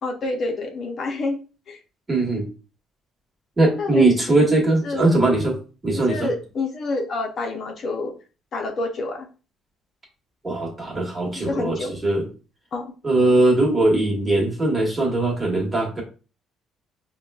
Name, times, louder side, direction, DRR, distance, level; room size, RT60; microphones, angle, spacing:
voice 1, 0.0-1.4 1.7-1.8 3.8-4.1 4.4-5.1 5.9-8.1 8.5-9.3 11.3-11.9 12.7-12.9, left 2 dB, 50° left, 2 dB, 0.6 m, -28 dB
voice 2, 2.1-2.5 3.6-5.6 5.8-6.3 10.4-12.3 13.0-16.0, right 2 dB, 20° right, -1 dB, 1.3 m, -20 dB
5.1 x 2.2 x 2.3 m, 0.35 s
cardioid pair, 115°, 0 cm